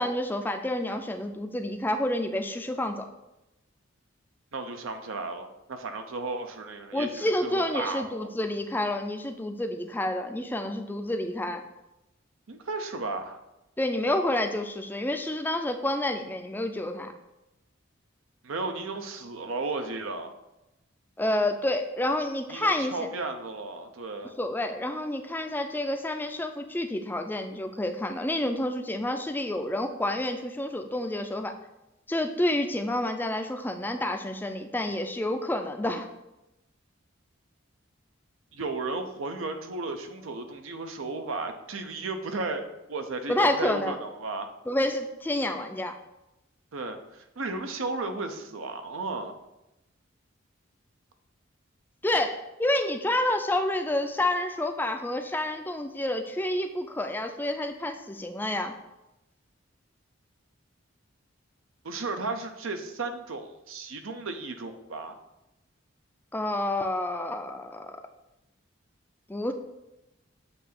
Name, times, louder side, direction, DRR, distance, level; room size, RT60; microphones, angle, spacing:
voice 1, 0.0-3.1 6.9-11.6 13.8-17.1 21.2-23.1 24.4-31.5 32.1-36.1 43.3-44.0 44.7-45.9 52.0-58.7 66.3-68.0 69.3-69.5, left 1 dB, 10° left, 6 dB, 0.4 m, -29 dB
voice 2, 4.5-8.3 12.5-13.4 18.4-20.3 22.5-24.3 38.5-44.5 46.7-49.3 61.8-65.2, right 3 dB, 90° right, 6 dB, 0.7 m, -34 dB
7.9 x 2.8 x 5.9 m, 0.94 s
head